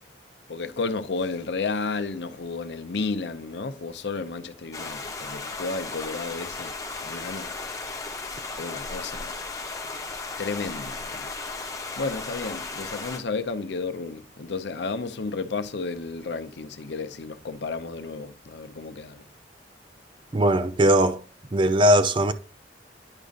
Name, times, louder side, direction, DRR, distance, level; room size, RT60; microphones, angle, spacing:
voice 1, 0.5-6.7 7.0-7.5 8.6-9.3 10.4-11.3 12.0-19.2, left 4 dB, 75° left, 0.6 m, -32 dB
sound 1, 4.7-13.2, left 3 dB, 20° left, 0.8 m, -35 dB
voice 2, 20.3-21.2 21.5-22.3, right 1 dB, 30° right, 0.4 m, -19 dB
9.7 x 5.1 x 2.4 m
head